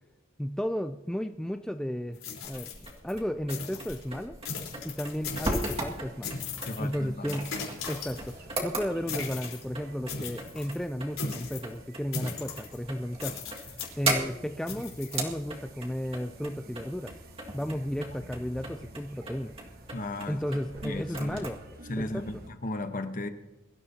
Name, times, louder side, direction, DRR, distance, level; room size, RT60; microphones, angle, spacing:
voice 1, 0.4-2.7 3.0-4.4 4.8-6.4 6.8-7.6 7.9-17.1 17.5-19.5 20.3-21.6 22.0-22.2, equal, 5° left, 7 dB, 0.3 m, -34 dB
sound 1, 2.1-3.2 3.5-4.0 4.5-6.0 6.2-6.9 7.3-8.5 9.1-9.6 10.1-10.8 11.2-11.7 12.1-12.8 13.2-13.9 14.7-15.2, left 5 dB, 80° left, 4.0 m, -38 dB
sound 2, 2.4-21.5, right 2 dB, 30° right, 2.0 m, -38 dB
sound 3, 5.3-22.5, right 1 dB, 45° right, 1.3 m, -51 dB
voice 2, 6.7-7.6 19.9-20.4 20.8-21.4 21.9-23.3, left 2 dB, 40° left, 8 dB, 1.1 m, -35 dB
23.0 x 13.5 x 2.8 m, 1.1 s
head